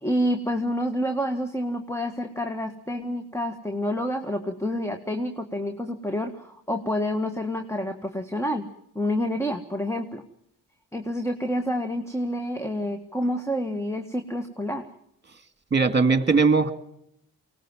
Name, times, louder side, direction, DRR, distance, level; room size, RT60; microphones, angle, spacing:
voice 1, 0.0-8.7 9.0-10.2 10.9-14.9, equal, 5° left, 7 dB, 1.8 m, -28 dB
voice 2, 15.7-16.7, right 4 dB, 30° right, 9 dB, 2.4 m, -19 dB
23.5 x 19.0 x 7.4 m, 0.74 s
cardioid pair, 50°, 36 cm